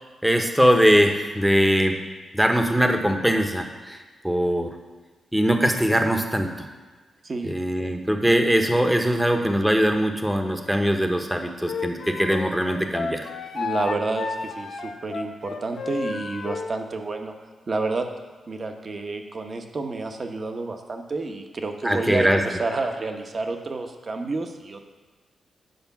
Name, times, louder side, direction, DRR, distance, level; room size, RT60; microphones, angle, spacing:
voice 1, 0.2-2.0 2.3-4.0 4.2-4.7 5.3-6.5 7.4-13.3 21.8-22.4, equal, 5° right, 4 dB, 0.9 m, -21 dB
voice 2, 7.2-7.5 13.5-17.3 17.7-18.1 18.5-24.8, right 3 dB, 40° right, 5 dB, 1.0 m, -29 dB
Wind instrument woodwind instrument, 11.6-16.7, left 4 dB, 70° left, 0.9 m, -32 dB
9.3 x 5.1 x 5.8 m, 1.3 s
cardioid pair, 90°, 0 cm